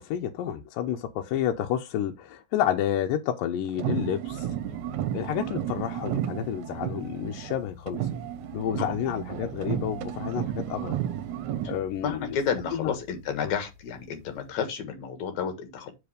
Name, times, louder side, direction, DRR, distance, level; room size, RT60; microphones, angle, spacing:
voice 1, 0.0-4.5 5.1-8.1 8.5-11.0 11.6-12.4 12.7-12.9 13.4-13.5, left 10 dB, 85° left, 2.4 m, -30 dB
sound 1, 3.7-7.6 7.9-11.8, right 11 dB, 70° right, 2.0 m, -32 dB
sound 2, 4.3-14.5, left 5 dB, 15° left, 1.5 m, -50 dB
voice 2, 12.0-15.9, left 7 dB, 60° left, 2.7 m, -31 dB
7.0 x 5.2 x 4.9 m
omnidirectional pair, 3.8 m